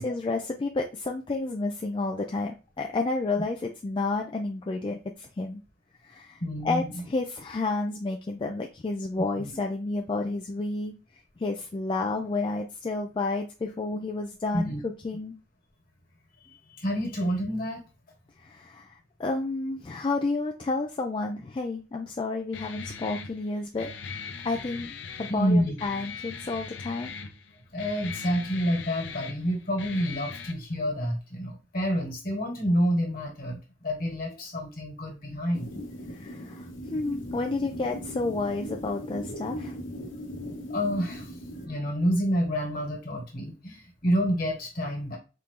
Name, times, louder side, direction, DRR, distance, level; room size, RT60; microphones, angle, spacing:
voice 1, 0.0-5.6 6.0-10.9 11.4-15.3 18.4-23.9 24.4-27.1 36.1-39.7, left 3 dB, 25° left, 2 dB, 0.3 m, -31 dB
voice 2, 6.4-7.0 9.4-9.6 14.5-14.8 16.8-17.8 25.3-25.8 27.7-35.7 40.7-41.3 41.6-45.2, equal, 50° left, 1 dB, 1.5 m, -28 dB
Guitar, 22.5-30.5, left 5 dB, 70° left, 0.6 m, -40 dB
sound 1, 35.5-41.7, equal, 85° left, 1.0 m, -39 dB
4.3 x 2.6 x 3.6 m, 0.32 s
head